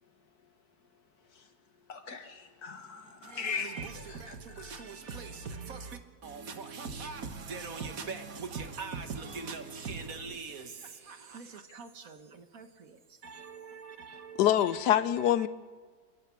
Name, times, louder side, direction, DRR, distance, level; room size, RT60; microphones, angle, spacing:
voice 1, 1.9-4.8, left 5 dB, 70° left, 2.1 m, -40 dB
voice 2, 3.3-3.9 4.2-10.7 11.1-12.2 12.5-12.7 13.2-14.4, right 5 dB, 60° right, 1.7 m, -41 dB
voice 3, 14.4-15.5, left 11 dB, 90° left, 1.3 m, -24 dB
28.5 x 11.0 x 8.4 m
omnidirectional pair, 1.7 m